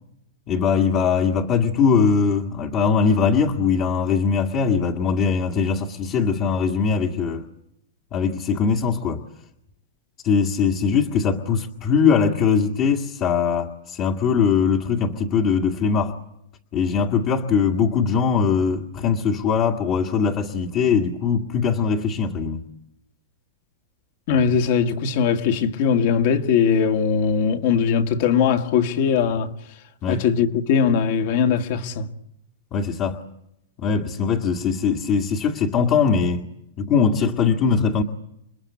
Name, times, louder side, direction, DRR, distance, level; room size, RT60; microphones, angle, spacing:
voice 1, 0.5-7.4 8.1-9.2 10.2-16.2 16.7-22.6 30.0-30.3 32.7-33.2 33.8-36.4 36.8-38.0, left 6 dB, 30° left, 1.8 m, -21 dB
voice 2, 24.3-29.5 30.1-32.1, left 6 dB, 50° left, 2.1 m, -20 dB
29.0 x 21.5 x 8.4 m
hypercardioid pair, 150°, 0 cm